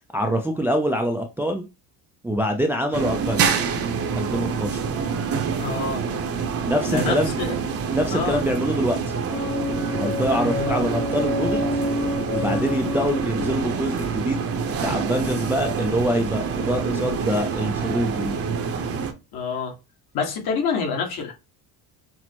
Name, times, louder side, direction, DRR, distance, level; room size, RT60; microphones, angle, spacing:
voice 1, 0.1-1.7 2.2-3.6 4.1-4.8 6.6-7.3 7.9-9.0 9.9-11.7 12.3-14.5 14.8-18.4, equal, 5° right, 0.3 m, -25 dB
sound 1, 2.9-19.1, right 6 dB, 35° right, 0.7 m, -26 dB
voice 2, 5.6-6.0 6.9-7.5 8.1-8.4 10.4-10.8 19.3-19.8 20.1-21.3, left 5 dB, 65° left, 1.6 m, -27 dB
sound 2, 9.3-15.1, left 2 dB, 40° left, 0.7 m, -29 dB
6.0 x 2.1 x 2.9 m
cardioid pair, 130°, 41 cm